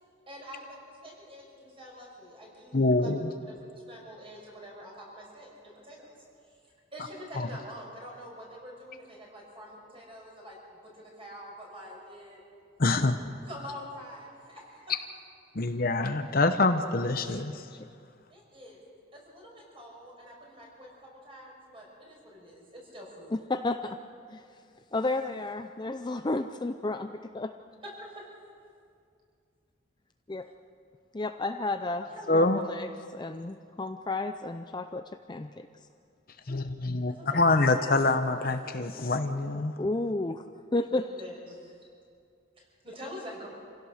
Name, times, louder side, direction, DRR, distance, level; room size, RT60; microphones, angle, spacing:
voice 1, 0.3-2.9 3.5-6.1 6.9-10.6 10.8-12.4 13.4-15.0 18.3-18.8 19.1-20.9 21.2-23.3 27.8-28.2 32.1-32.5 37.1-38.0 40.9-41.8 42.6-43.5, equal, 30° right, -2 dB, 5.8 m, -46 dB
voice 2, 2.7-3.3 7.3-7.5 12.8-13.1 15.5-17.7 32.3-32.6 36.5-39.7, left 2 dB, 45° left, 7 dB, 0.9 m, -25 dB
voice 3, 23.3-24.0 24.3-24.4 24.9-27.5 30.3-30.5 31.2-32.1 32.3-32.9 33.1-35.0 35.3-35.7 39.8-40.4 40.7-41.1, left 2 dB, 20° left, 7 dB, 0.5 m, -32 dB
27.0 x 16.5 x 6.5 m, 2.4 s
head